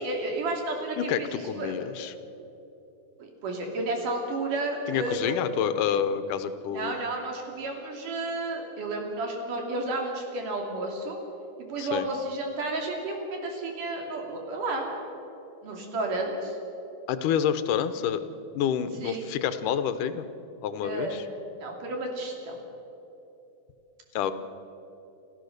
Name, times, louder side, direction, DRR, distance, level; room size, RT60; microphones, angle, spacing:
voice 1, 0.0-1.7 3.2-5.3 6.7-11.2 11.6-14.9 15.6-16.6 19.0-19.3 20.8-21.2 21.5-22.6, right 2 dB, 90° right, 1 dB, 4.3 m, -32 dB
voice 2, 1.0-2.1 4.9-7.0 11.8-12.1 17.1-18.2 18.5-20.2 20.6-21.2 24.2-24.3, left 8 dB, 85° left, 11 dB, 2.4 m, -28 dB
29.0 x 14.0 x 6.6 m, 2.9 s
omnidirectional pair, 3.6 m